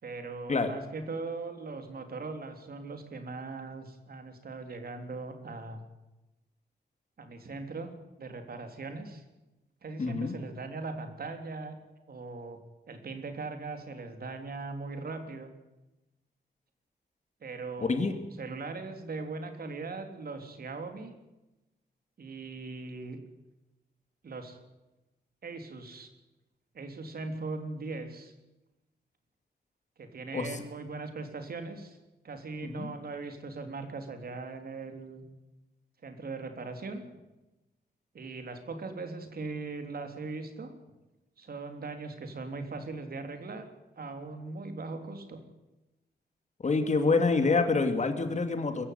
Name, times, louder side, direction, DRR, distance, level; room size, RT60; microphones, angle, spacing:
voice 1, 0.0-5.8 7.2-9.2 9.8-11.8 12.1-12.6 12.9-15.5 17.4-21.1 22.2-23.2 24.2-24.6 25.4-26.1 26.7-28.3 30.0-32.0 32.2-35.3 36.0-37.0 38.1-40.7 41.4-43.7 44.0-45.4, right 3 dB, 60° right, 6 dB, 3.6 m, -40 dB
voice 2, 10.0-10.4 17.8-18.1 30.3-30.5 32.6-32.9 46.6-48.8, left 3 dB, 40° left, 7 dB, 2.7 m, -27 dB
23.5 x 15.0 x 9.5 m, 1.0 s
wide cardioid pair, 140°, 18 cm